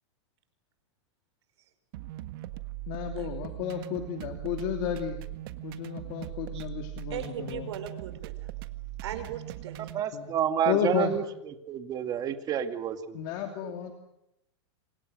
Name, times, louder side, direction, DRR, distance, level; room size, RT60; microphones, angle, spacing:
sound 1, 1.9-10.0, right 15 dB, 50° right, 1.6 m, -40 dB
voice 1, 2.9-5.2 5.6-7.7 10.1-10.3 10.7-11.2 13.1-13.9, left 9 dB, 45° left, 4 dB, 2.9 m, -32 dB
voice 2, 7.1-8.5 9.0-9.8, right 10 dB, 70° right, 8 dB, 5.6 m, -38 dB
voice 3, 9.9-11.2 11.7-13.2 13.6-13.7, right 9 dB, 25° right, 8 dB, 2.1 m, -29 dB
28.0 x 26.0 x 6.5 m, 0.81 s
supercardioid pair, 150°, 15 cm